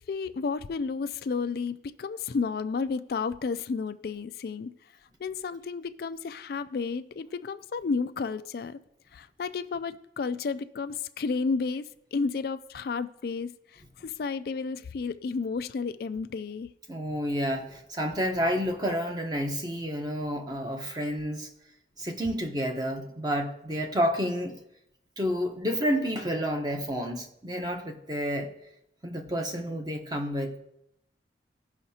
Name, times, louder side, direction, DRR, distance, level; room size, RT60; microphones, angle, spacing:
voice 1, 0.1-4.7 5.2-8.8 9.1-16.7, left 4 dB, 55° left, 0.3 m, -32 dB
voice 2, 16.9-21.5 22.0-24.6 25.2-28.5 29.0-30.6, equal, 25° right, 1.0 m, -30 dB
17.0 x 5.7 x 2.8 m
head